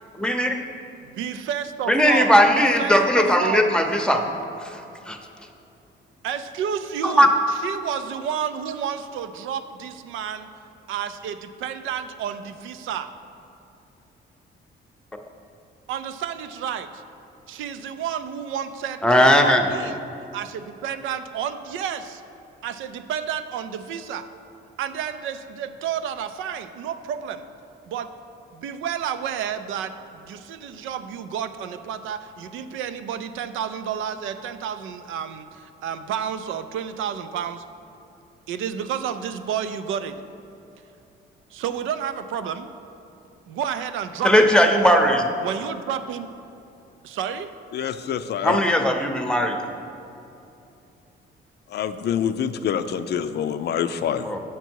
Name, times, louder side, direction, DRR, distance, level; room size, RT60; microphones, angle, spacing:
voice 1, 0.1-0.5 1.9-4.2 4.6-4.8 5.1-5.2 7.0-7.3 19.0-19.7 44.2-45.3 48.4-49.6 54.2-54.4, equal, 5° left, 4 dB, 0.7 m, -18 dB
voice 2, 1.0-3.7 6.2-10.5 10.9-13.1 15.9-17.0 17.5-20.0 20.3-22.2 22.6-24.3 24.8-27.4 27.9-28.1 28.5-37.6 38.5-40.2 41.5-42.7 43.5-44.5 45.4-46.3 47.0-47.5, right 8 dB, 85° right, 10 dB, 0.5 m, -31 dB
voice 3, 47.7-48.6 51.7-54.3, left 8 dB, 55° left, 11 dB, 0.4 m, -26 dB
8.2 x 5.9 x 4.6 m, 2.8 s
cardioid pair, 90°, 20 cm